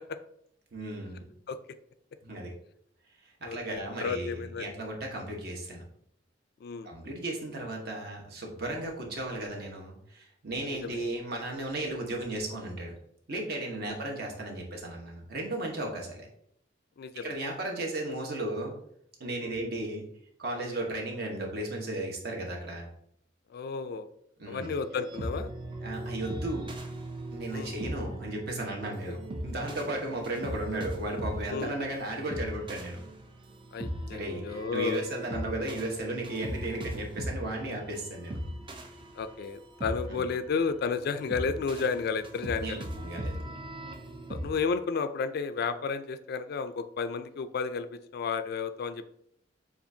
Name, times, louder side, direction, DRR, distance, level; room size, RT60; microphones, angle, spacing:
voice 1, 0.7-1.2 2.2-2.5 3.2-5.9 6.8-12.9 13.3-16.3 17.1-18.7 19.2-20.0 20.4-22.9 24.4-24.7 25.8-26.7 27.3-33.0 34.1-38.4 40.1-40.3 42.6-43.4, right 1 dB, 55° right, 0 dB, 1.0 m, -35 dB
voice 2, 3.4-4.7 6.6-6.9 10.8-11.0 13.8-13.9 17.0-17.2 19.4-19.6 23.5-24.1 24.5-25.5 27.5-27.7 30.7-30.8 31.5-31.7 33.7-35.0 35.3-35.4 39.1-42.9 44.3-47.9 48.1-49.0, left 5 dB, 55° left, 11 dB, 0.3 m, -32 dB
sound 1, 24.6-44.5, right 1 dB, 25° right, 0.4 m, -39 dB
6.9 x 2.4 x 2.7 m, 0.70 s
head